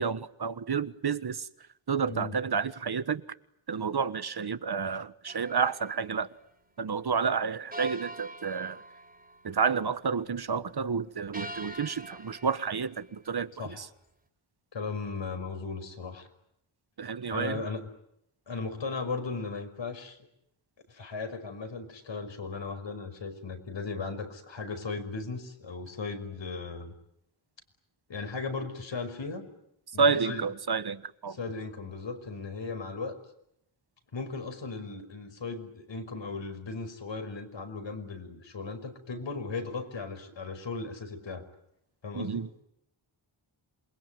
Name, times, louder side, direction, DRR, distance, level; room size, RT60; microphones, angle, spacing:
voice 1, 0.0-1.5 1.9-3.2 3.7-6.3 6.8-8.8 9.4-13.5 13.8-13.9 17.0-17.6 30.0-31.4 42.1-42.5, right 5 dB, 50° right, 1.5 m, -30 dB
sound 1, 5.3-6.2 7.7-9.5 11.3-13.0, right 1 dB, 20° right, 3.7 m, -44 dB
voice 2, 14.7-16.3 17.3-17.8 18.5-20.2 20.9-26.9 28.1-29.5 29.9-30.5 31.3-33.2 34.1-41.4 42.0-42.5, left 4 dB, 65° left, 5.6 m, -37 dB
27.5 x 22.5 x 9.4 m
wide cardioid pair, 85°, 48 cm